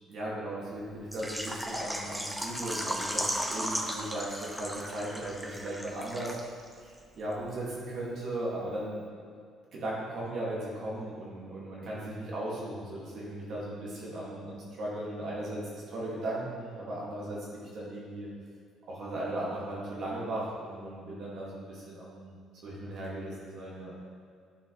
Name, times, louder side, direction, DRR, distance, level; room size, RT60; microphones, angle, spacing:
voice 1, 0.1-6.4 6.8-9.0 9.7-18.3 18.9-22.3 22.6-23.9, right 1 dB, 60° right, -6 dB, 1.7 m, -37 dB
Water / Liquid, 1.1-6.7 7.0-7.1 7.5-7.6, equal, 5° right, 0.6 m, -35 dB
10.0 x 4.3 x 3.0 m, 2.2 s
cardioid pair, 105°, 0 cm